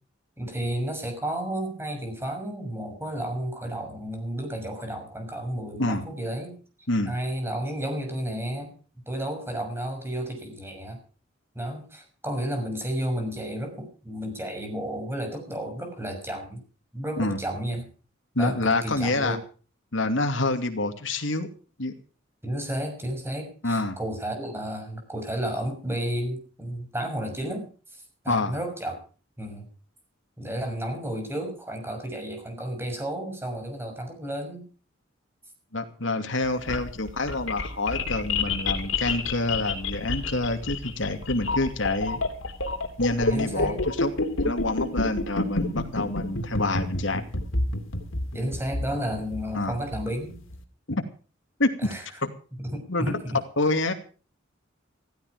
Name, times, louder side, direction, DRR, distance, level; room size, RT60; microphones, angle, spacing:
voice 1, 0.4-6.6 7.1-8.8 9.1-11.0 11.5-16.6 16.9-17.9 18.4-19.4 22.4-29.0 29.4-29.7 30.4-34.6 43.3-43.8 48.3-50.4 51.8-52.0 52.6-53.4, right 1 dB, 10° right, 4 dB, 6.3 m, -32 dB
voice 2, 18.3-19.4 19.9-21.5 21.8-21.9 23.6-24.0 28.3-28.6 35.7-42.2 43.0-44.1 44.4-47.2 49.5-49.8 50.9-51.1 51.6-51.9 52.2-52.3 52.9-53.2 53.6-53.9, left 2 dB, 70° left, 6 dB, 2.7 m, -27 dB
sound 1, 36.4-50.6, left 3 dB, 90° left, 2.9 m, -29 dB
15.5 x 15.5 x 5.0 m, 0.38 s
head